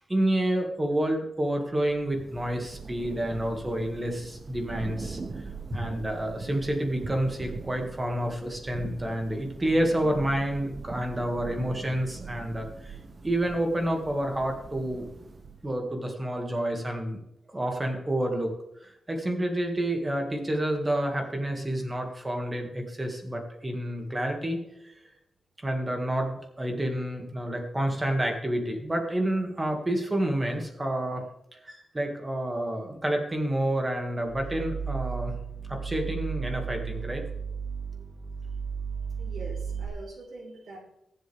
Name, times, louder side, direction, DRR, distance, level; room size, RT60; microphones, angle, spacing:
voice 1, 0.1-13.0 13.2-15.1 15.6-17.2 17.5-18.5 18.8-24.9 25.6-31.2 31.6-35.4 35.7-37.2, right 1 dB, 20° right, 3 dB, 2.2 m, -29 dB
Thunder / Rain, 1.8-15.9, right 4 dB, 35° right, 0.9 m, -42 dB
voice 2, 5.8-6.2 39.2-40.8, right 3 dB, 90° right, -3 dB, 3.7 m, -44 dB
sound 1, 34.2-39.9, right 6 dB, 65° right, 2.3 m, -34 dB
23.0 x 7.8 x 3.5 m, 0.81 s
wide cardioid pair, 140°, 0 cm